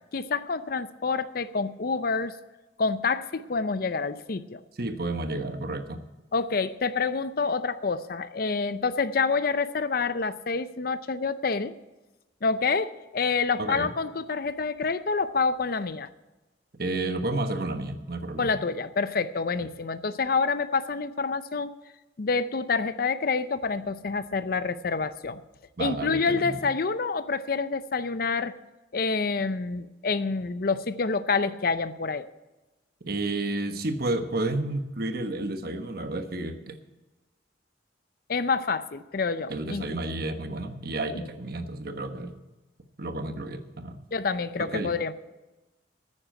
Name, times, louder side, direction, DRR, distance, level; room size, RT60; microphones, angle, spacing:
voice 1, 0.1-2.4 2.8-4.6 6.3-11.7 12.4-16.1 18.4-21.7 22.2-25.4 25.8-28.5 28.9-32.3 38.3-39.8 41.1-41.3 44.1-45.1, left 4 dB, 55° left, 13 dB, 0.6 m, -27 dB
voice 2, 4.8-6.0 13.6-13.9 16.8-18.5 25.8-26.6 33.1-36.8 39.5-42.3 43.0-44.0 44.6-44.9, right 2 dB, 55° right, 7 dB, 1.2 m, -31 dB
9.8 x 9.8 x 7.6 m, 1.1 s
head